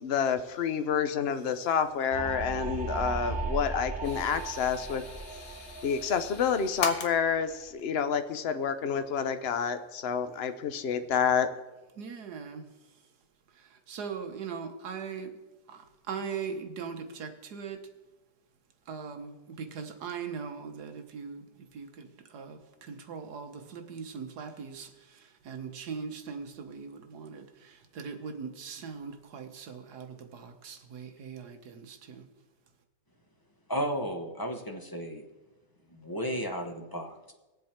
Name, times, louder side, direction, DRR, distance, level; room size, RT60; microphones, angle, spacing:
voice 1, 0.0-5.0 5.4-5.5 5.8-11.5, left 7 dB, 55° left, 9 dB, 0.7 m, -29 dB
sound 1, 2.1-7.6, right 4 dB, 40° right, 2.5 m, -37 dB
sound 2, 4.0-7.1 8.3-8.5 9.0-9.1, left 5 dB, 85° left, 1.8 m, -40 dB
voice 2, 12.0-13.0 13.5-15.4 15.7-17.8 18.9-32.2, right 6 dB, 65° right, 6 dB, 1.6 m, -40 dB
voice 3, 33.7-35.2 35.9-37.3, equal, 15° left, 3 dB, 0.8 m, -34 dB
20.0 x 7.5 x 4.4 m, 1.1 s
omnidirectional pair, 1.9 m